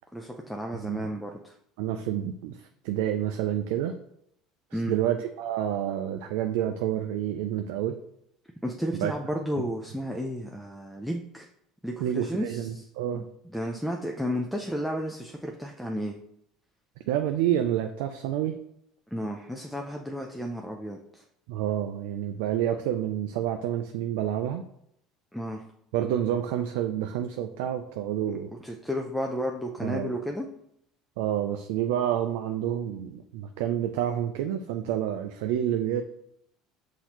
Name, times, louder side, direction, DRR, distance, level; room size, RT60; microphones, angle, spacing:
voice 1, 0.1-1.5 4.7-4.9 8.6-11.5 11.8-12.8 13.1-13.2 13.5-16.2 19.1-21.0 25.3-25.6 28.6-30.5, equal, ahead, 1 dB, 0.4 m, -32 dB
voice 2, 0.7-1.1 1.8-4.0 4.7-8.0 8.9-9.1 9.6-9.7 12.0-13.2 17.1-18.6 21.5-24.6 25.9-28.5 29.8-30.1 31.2-36.0, right 11 dB, 80° right, 6 dB, 0.3 m, -29 dB
5.7 x 2.7 x 2.9 m, 0.73 s
supercardioid pair, 100°, 0 cm